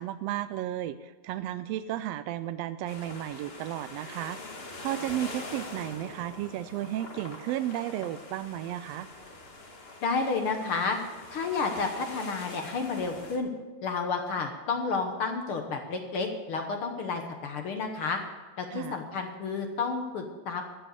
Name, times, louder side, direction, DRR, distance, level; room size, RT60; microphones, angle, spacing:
voice 1, 0.0-4.4 4.8-9.1 18.7-18.9, right 13 dB, 85° right, 12 dB, 1.4 m, -33 dB
sound 1, 2.9-13.4, left 2 dB, 35° left, 1.1 m, -44 dB
voice 2, 10.0-11.0 11.3-13.5 13.8-18.2 18.6-20.6, left 4 dB, 60° left, 4 dB, 1.7 m, -31 dB
13.5 x 7.9 x 8.3 m, 1.3 s
omnidirectional pair, 3.4 m